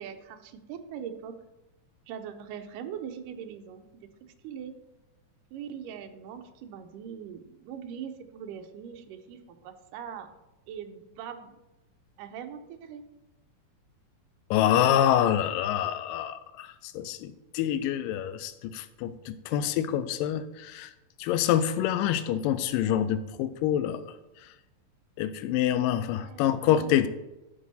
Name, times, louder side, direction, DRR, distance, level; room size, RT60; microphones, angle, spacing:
voice 1, 0.0-1.3 2.1-4.1 4.4-4.7 5.5-10.3 10.7-11.5 12.2-13.0 25.9-27.1, right 8 dB, 85° right, 6 dB, 2.2 m, -41 dB
voice 2, 14.5-20.9 21.2-24.0 25.2-27.1, left 10 dB, 85° left, 13 dB, 2.3 m, -26 dB
12.5 x 5.4 x 4.1 m, 0.97 s
omnidirectional pair, 3.9 m